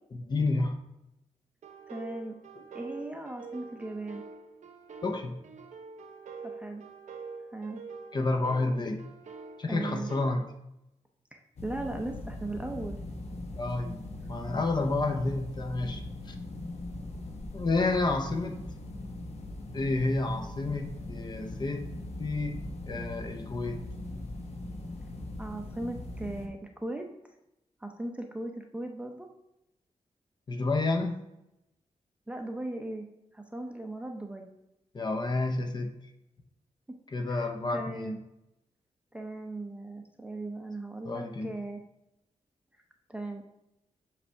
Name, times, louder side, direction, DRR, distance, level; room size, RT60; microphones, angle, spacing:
voice 1, 0.1-0.7 5.0-5.4 8.1-9.0 9.6-10.5 13.5-14.0 14.3-16.3 17.5-18.6 19.7-21.9 22.2-23.8 30.5-31.2 34.9-35.9 37.1-38.1 41.0-41.5, left 2 dB, 35° left, 5 dB, 0.7 m, -30 dB
sound 1, 1.6-10.3, right 4 dB, 75° right, 0.7 m, -45 dB
voice 2, 1.9-2.4 2.7-4.2 6.5-6.8 7.5-7.8 9.7-10.1 11.3-13.0 25.4-27.1 27.8-29.3 32.3-33.1 33.3-34.5 36.9-37.0 37.3-38.2 39.1-41.8 43.1-43.4, right 2 dB, 10° right, 3 dB, 0.6 m, -38 dB
sound 2, 11.6-26.5, left 2 dB, 60° left, 1.0 m, -40 dB
7.8 x 3.4 x 5.5 m, 0.88 s
wide cardioid pair, 160°, 12 cm